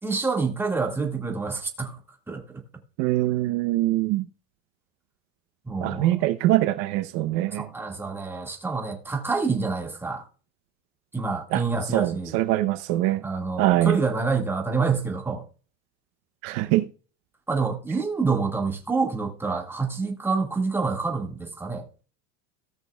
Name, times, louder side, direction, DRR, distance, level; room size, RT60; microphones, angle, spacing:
voice 1, 0.0-2.0 2.3-2.4 5.6-6.2 7.5-10.3 11.1-12.4 13.2-15.4 17.5-21.9, right 4 dB, 5° right, 1.9 m, -27 dB
voice 2, 3.0-4.2 5.8-7.7 11.5-11.6 11.9-13.2 13.6-14.0 16.4-16.9, right 15 dB, 60° right, 0.8 m, -23 dB
18.0 x 6.1 x 2.3 m
cardioid pair, 155°, 36 cm